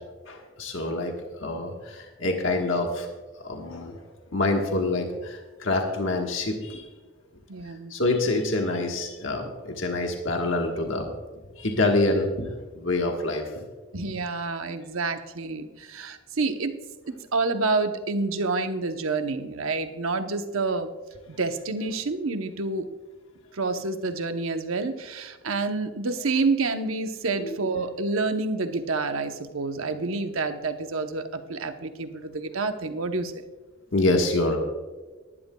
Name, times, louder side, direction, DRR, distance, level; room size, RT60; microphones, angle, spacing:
voice 1, 0.3-1.1 1.4-3.1 3.4-4.0 4.3-6.8 7.9-11.1 11.6-12.5 12.7-13.4 27.3-27.6 33.9-34.6, left 2 dB, 65° left, 2 dB, 1.3 m, -26 dB
voice 2, 7.5-7.9 13.9-16.7 17.3-20.9 21.4-22.9 23.5-33.3, right 3 dB, 80° right, 7 dB, 0.9 m, -28 dB
19.0 x 11.0 x 2.3 m, 1.3 s
head